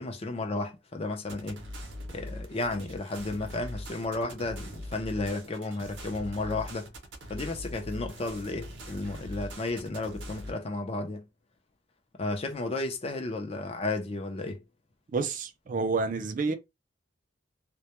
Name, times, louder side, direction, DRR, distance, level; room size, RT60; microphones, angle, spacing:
voice 1, 0.0-1.6 2.1-6.9 7.3-11.3 12.2-14.6, left 2 dB, 30° left, 0.5 m, -33 dB
sound 1, 1.3-10.5, equal, 80° right, 0.7 m, -42 dB
voice 2, 15.1-16.5, right 4 dB, 45° right, 0.4 m, -29 dB
2.2 x 2.1 x 2.8 m
head